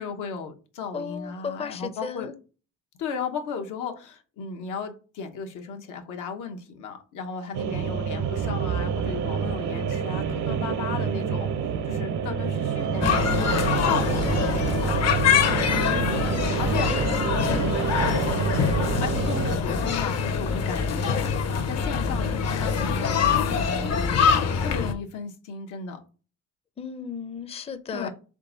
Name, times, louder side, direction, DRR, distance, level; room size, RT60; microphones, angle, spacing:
voice 1, 0.0-2.3 3.0-11.5 11.9-15.0 16.6-16.9 19.0-26.0 27.9-28.1, left 6 dB, 90° left, 0.9 m, -35 dB
voice 2, 0.9-2.3 15.7-17.0 17.5-17.7 26.8-28.1, left 6 dB, 20° left, 0.5 m, -36 dB
sound 1, 7.5-19.6, right 7 dB, 70° right, 0.7 m, -27 dB
sound 2, 13.0-24.9, left 6 dB, 60° left, 0.8 m, -24 dB
3.7 x 3.5 x 3.8 m
cardioid pair, 90°, 30 cm